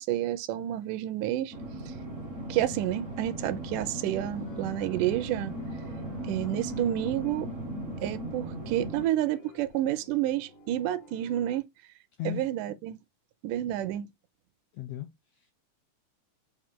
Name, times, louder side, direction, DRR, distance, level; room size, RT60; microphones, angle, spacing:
voice 1, 0.0-1.5 1.9-2.0 2.5-5.5 6.2-7.5 8.0-11.7 12.3-13.0 13.4-14.1, right 13 dB, 80° right, 2.0 m, -30 dB
sound 1, 1.5-9.1, right 1 dB, 55° right, 0.8 m, -37 dB
sound 2, 3.6-11.6, left 3 dB, 65° left, 1.7 m, -54 dB
voice 2, 14.7-15.5, left 12 dB, 90° left, 1.4 m, -37 dB
5.8 x 2.5 x 3.6 m
omnidirectional pair, 3.7 m